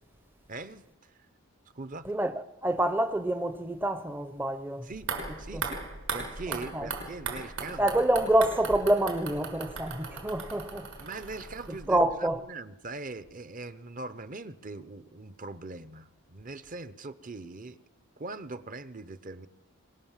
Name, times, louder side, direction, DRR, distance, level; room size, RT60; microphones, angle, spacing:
voice 1, 0.5-1.2 1.7-2.1 4.8-5.1 5.4-7.9 11.0-17.8 18.2-19.5, right 3 dB, 35° right, 0.9 m, -41 dB
voice 2, 2.0-4.9 5.5-5.6 6.7-6.9 7.8-10.9 11.9-12.4, right 1 dB, 10° right, 0.7 m, -27 dB
sound 1, 4.9-12.1 12.3-12.4, right 4 dB, 65° right, 5.5 m, -38 dB
23.0 x 21.0 x 7.4 m
head